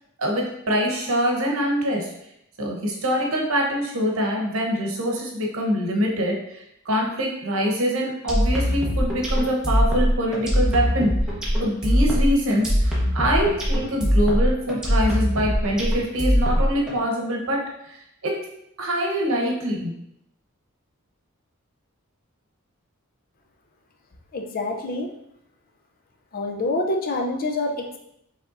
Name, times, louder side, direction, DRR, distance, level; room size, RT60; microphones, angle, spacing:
voice 1, 0.2-2.1 2.6-11.1 11.6-18.3 18.8-19.9, equal, 70° right, 0 dB, 0.9 m, -24 dB
sound 1, 8.3-16.9, equal, 5° right, 1.0 m, -21 dB
voice 2, 24.3-25.1 26.3-28.0, left 2 dB, 45° left, 3 dB, 0.5 m, -26 dB
5.2 x 3.4 x 2.5 m, 0.79 s
head